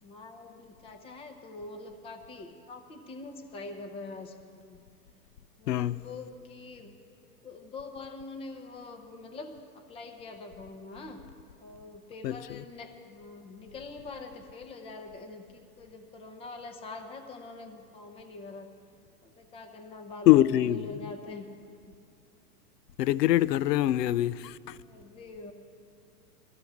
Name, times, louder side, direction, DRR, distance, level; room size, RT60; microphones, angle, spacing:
voice 1, 0.0-4.8 5.6-7.0 7.4-11.2 11.6-18.7 19.2-21.5 21.9-22.0 24.7-25.5, left 3 dB, 10° left, 0.6 m, -44 dB
voice 2, 5.7-6.0 12.2-12.6 20.3-20.9 23.0-24.8, left 14 dB, 85° left, 0.6 m, -24 dB
20.0 x 13.5 x 3.5 m
hypercardioid pair, 140°, 47 cm